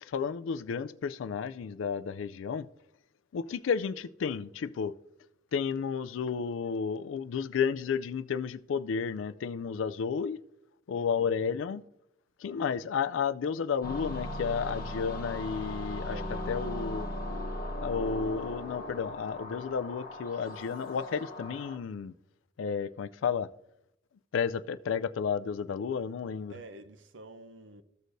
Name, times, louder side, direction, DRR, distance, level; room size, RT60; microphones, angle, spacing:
voice 1, 0.1-2.7 3.3-4.9 5.5-10.4 10.9-11.8 12.4-16.2 16.5-17.1 17.8-22.1 22.6-23.5 24.3-26.5, left 6 dB, 80° left, 0.4 m, -32 dB
voice 2, 10.9-11.5 16.0-17.1 26.5-27.8, right 2 dB, 70° right, 0.7 m, -48 dB
sound 1, 13.8-21.8, left 1 dB, 50° left, 0.9 m, -38 dB
14.0 x 6.4 x 2.6 m
head